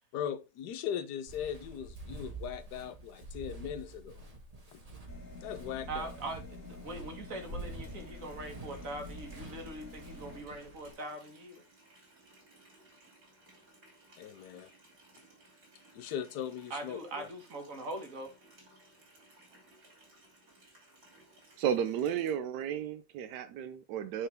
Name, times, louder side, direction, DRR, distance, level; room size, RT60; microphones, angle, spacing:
voice 1, 0.1-4.2 4.7-4.8 5.4-6.1 14.2-14.7 15.9-17.3, left 9 dB, 80° left, 1.3 m, -39 dB
Walk footsteps, 1.3-10.9, right 2 dB, 25° right, 1.4 m, -47 dB
sound 1, 5.1-10.4, left 3 dB, 50° left, 2.0 m, -49 dB
voice 2, 5.9-11.6 16.7-18.3, right 2 dB, 55° right, 2.0 m, -42 dB
Water tap faucet, 7.8-22.3, right 2 dB, 70° right, 3.5 m, -60 dB
voice 3, 21.6-24.3, right 9 dB, 90° right, 1.2 m, -33 dB
9.3 x 4.5 x 3.4 m
omnidirectional pair, 1.7 m